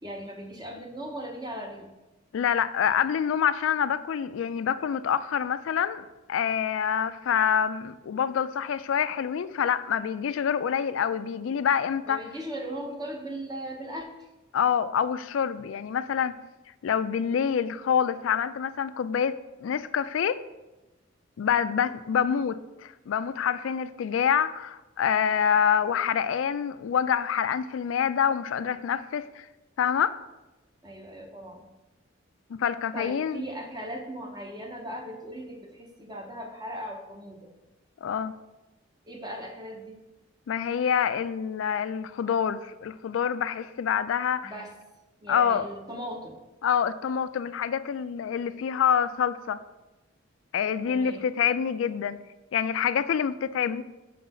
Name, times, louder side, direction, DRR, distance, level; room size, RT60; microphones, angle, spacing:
voice 1, 0.0-1.9 12.1-14.3 30.8-31.7 32.9-37.5 39.0-40.0 44.4-44.8 45.2-46.4 50.9-51.3, equal, 20° right, 2 dB, 0.7 m, -38 dB
voice 2, 2.3-12.2 14.5-16.4 16.8-20.4 21.4-29.5 29.8-30.2 32.5-33.4 38.0-38.4 40.5-44.5 45.3-45.7 46.6-49.6 50.5-52.2 52.5-53.8, left 8 dB, 80° left, 14 dB, 0.3 m, -26 dB
5.9 x 3.9 x 5.4 m, 1.0 s
head